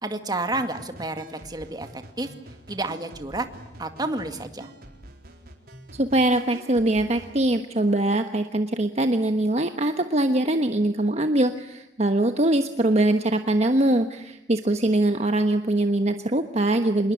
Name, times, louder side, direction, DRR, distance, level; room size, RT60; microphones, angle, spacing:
voice 1, 0.0-2.3 2.7-3.5 3.8-4.7, right 2 dB, 25° right, 7 dB, 2.2 m, -30 dB
sound 1, 0.5-7.4, right 1 dB, 60° right, 4.4 m, -46 dB
voice 2, 5.9-17.1, right 1 dB, 40° right, 6 dB, 1.3 m, -22 dB
27.0 x 21.5 x 10.0 m, 0.83 s
head